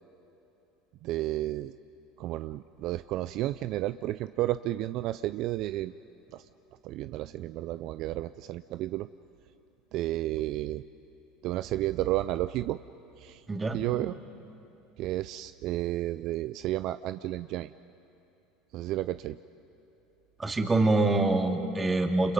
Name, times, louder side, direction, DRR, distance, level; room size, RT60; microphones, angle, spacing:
voice 1, 1.0-1.7 2.2-5.9 6.3-6.4 6.8-9.1 9.9-10.8 11.4-12.8 13.2-13.4 13.7-14.2 15.0-17.7 18.7-19.4, right 15 dB, 60° right, 13 dB, 0.4 m, -32 dB
voice 2, 20.4-22.3, right 2 dB, 20° right, 3 dB, 2.5 m, -25 dB
30.0 x 27.0 x 5.3 m, 3.0 s
hypercardioid pair, 85°, 0 cm